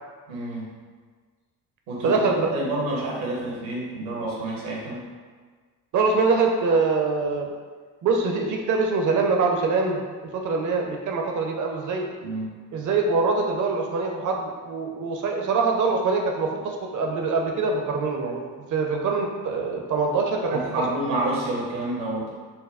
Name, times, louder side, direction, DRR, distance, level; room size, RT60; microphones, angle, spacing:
voice 1, 0.3-0.7 1.9-5.1 12.2-12.5 20.5-22.3, right 1 dB, 70° right, -4 dB, 1.1 m, -29 dB
voice 2, 2.0-2.5 5.9-7.5 8.0-12.1 12.7-20.6, right 4 dB, 40° right, 1 dB, 0.7 m, -24 dB
5.4 x 2.2 x 2.4 m, 1.5 s
figure-of-eight pair, 45°, 49 cm